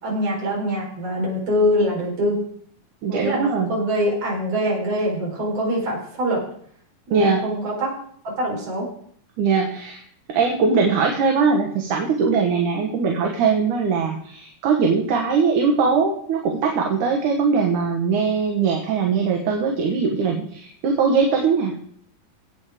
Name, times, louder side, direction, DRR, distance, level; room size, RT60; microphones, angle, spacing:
voice 1, 0.0-2.4 3.1-6.4 7.1-7.9 8.4-8.9, equal, 50° right, -3 dB, 5.6 m, -24 dB
voice 2, 3.0-3.7 7.1-7.5 9.4-10.0 10.3-21.8, right 5 dB, 70° right, 1 dB, 2.8 m, -21 dB
16.5 x 8.6 x 4.9 m, 0.62 s
omnidirectional pair, 3.7 m